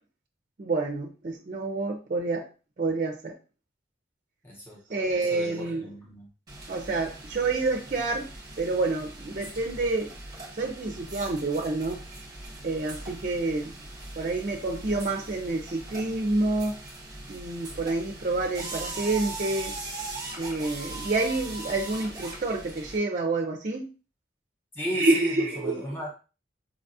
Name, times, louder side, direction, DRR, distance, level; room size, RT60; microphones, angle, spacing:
voice 1, 0.6-2.5 2.8-3.3 4.9-5.9 6.7-8.3 8.6-10.1 10.5-12.0 12.6-13.7 14.2-16.8 17.3-19.7 20.4-23.9 24.9-25.8, right 3 dB, 40° right, 3 dB, 0.4 m, -28 dB
voice 2, 4.4-6.3 24.7-26.1, equal, 10° left, -4 dB, 0.8 m, -36 dB
sound 1, 6.5-23.0, right 2 dB, 20° right, 0.9 m, -40 dB
4.7 x 2.3 x 2.6 m, 0.33 s
head